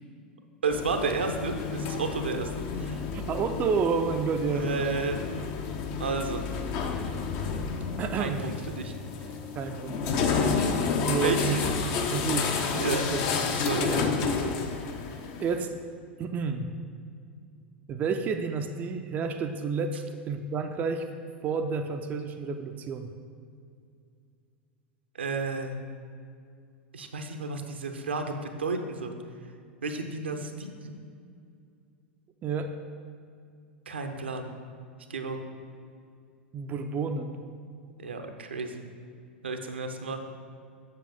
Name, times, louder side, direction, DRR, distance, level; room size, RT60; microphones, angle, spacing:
voice 1, 0.6-3.0 4.5-5.2 6.0-6.4 8.1-8.9 9.2-9.3 11.2-11.7 12.7-13.0 13.7-14.0 25.2-25.8 26.9-29.2 29.8-30.9 33.9-34.5 35.1-35.4 38.0-38.9 39.4-40.2, right 4 dB, 75° right, 5 dB, 0.7 m, -32 dB
sound 1, 0.7-15.6, left 5 dB, 45° left, 0.7 m, -30 dB
voice 2, 3.1-4.7 8.0-8.5 9.6-10.3 11.0-11.6 11.9-13.2 13.6-14.2 15.4-15.7 16.2-16.7 17.9-21.1 21.4-23.1 32.4-32.7 36.5-37.4, right 5 dB, 25° right, 6 dB, 0.4 m, -30 dB
7.5 x 6.7 x 3.8 m, 2.3 s
figure-of-eight pair, 85°, 6 cm